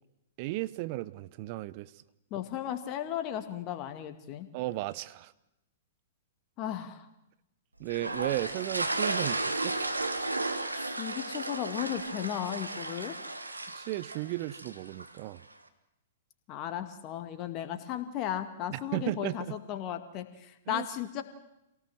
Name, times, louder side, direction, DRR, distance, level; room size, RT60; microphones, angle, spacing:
voice 1, 0.4-2.0 4.5-5.3 7.8-9.8 13.7-15.4 18.7-19.6 20.7-20.9, right 17 dB, 40° right, 16 dB, 0.9 m, -35 dB
voice 2, 2.3-4.5 6.6-7.1 10.7-13.2 16.5-21.2, left 11 dB, 35° left, 8 dB, 2.1 m, -35 dB
sound 1, 7.9-15.2, right 2 dB, 85° right, 1.7 m, -34 dB
26.5 x 18.0 x 7.8 m, 0.92 s
figure-of-eight pair, 110°, 0 cm